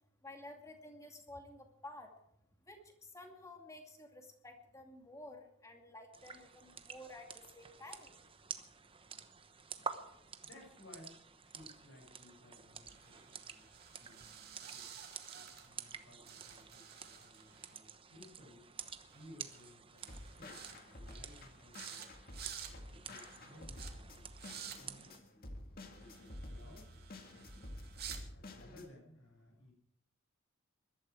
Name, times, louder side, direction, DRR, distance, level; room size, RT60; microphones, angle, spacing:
voice 1, 0.2-2.1 2.7-8.2 13.3-13.4 15.9-16.0, left 1 dB, 15° left, 3 dB, 2.4 m, -52 dB
sound 1, 6.1-25.2, right 6 dB, 25° right, 1.0 m, -50 dB
voice 2, 10.4-15.0 15.6-18.6 19.0-22.1 22.6-25.5 25.8-29.7, left 1 dB, 70° left, 1 dB, 6.8 m, -60 dB
sound 2, 12.9-16.0 16.2-17.7 19.1-19.2 19.5-19.7 20.0-20.7 21.1-21.4 21.7-22.1 22.3-22.7 23.1-23.4 23.7-23.9 24.3-24.8 26.0-28.2, right 8 dB, 50° right, 2.3 m, -51 dB
sound 3, 20.1-28.9, left 1 dB, 45° left, 2.1 m, -51 dB
21.5 x 12.0 x 4.8 m, 0.76 s
head